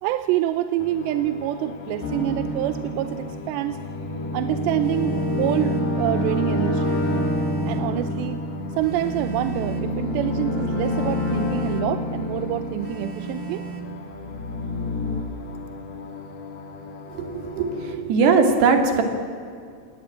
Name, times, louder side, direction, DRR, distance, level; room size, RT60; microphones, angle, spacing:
voice 1, 0.0-3.8 4.3-7.0 7.7-8.4 8.8-13.6, right 13 dB, 90° right, 11 dB, 3.0 m, -26 dB
sound 1, 0.8-18.0, left 5 dB, 55° left, 3.2 m, -39 dB
sound 2, 2.0-13.7 14.1-15.2, left 1 dB, 75° left, 6.4 m, -27 dB
Telephone, 4.8-5.9 6.8-7.9 8.8-9.9 10.8-11.9 12.8-13.9, right 4 dB, 45° right, 3.0 m, -37 dB
voice 2, 17.1-19.0, right 4 dB, 70° right, 6 dB, 4.6 m, -20 dB
28.0 x 19.5 x 8.7 m, 2.2 s
omnidirectional pair, 4.9 m